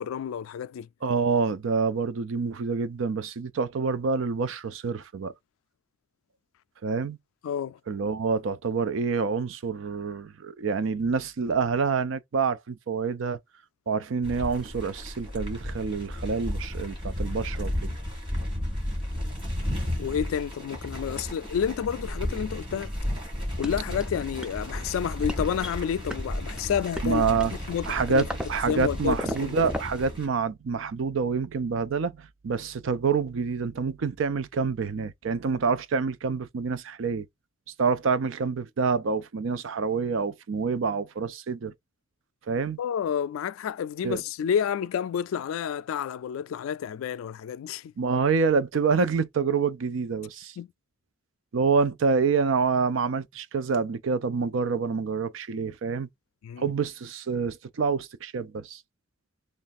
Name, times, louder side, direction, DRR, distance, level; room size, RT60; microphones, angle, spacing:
voice 1, 0.0-0.9 7.4-7.8 20.0-22.9 23.6-27.4 27.7-28.2 28.7-29.7 42.8-47.9 50.6-50.7 56.4-56.6, left 8 dB, 85° left, 0.3 m, -30 dB
voice 2, 1.0-5.3 6.8-7.2 7.9-13.4 13.9-17.9 27.0-27.5 27.9-37.3 37.8-41.7 42.5-42.8 44.0-44.2 48.0-50.5 51.5-56.1 56.6-58.8, right 5 dB, 70° right, 0.4 m, -27 dB
sound 1, 14.2-30.3, left 1 dB, 25° right, 1.5 m, -33 dB
sound 2, 23.6-30.1, equal, 5° right, 0.4 m, -38 dB
3.2 x 2.4 x 4.1 m
head